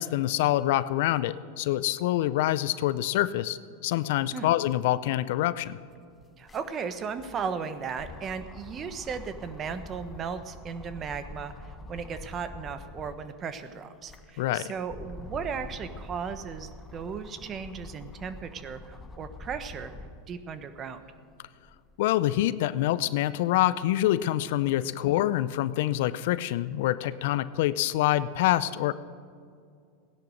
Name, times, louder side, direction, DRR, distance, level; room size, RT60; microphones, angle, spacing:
voice 1, 0.0-5.8 14.4-14.7 22.0-28.9, left 14 dB, 65° left, 16 dB, 0.5 m, -26 dB
sound 1, 5.7-13.3 13.8-20.3 20.8-22.0, left 2 dB, 20° left, 1.0 m, -46 dB
voice 2, 6.4-19.9 20.3-21.0 25.0-25.1, right 6 dB, 35° right, 10 dB, 1.2 m, -36 dB
16.5 x 10.5 x 6.7 m, 2.3 s
hypercardioid pair, 105°, 0 cm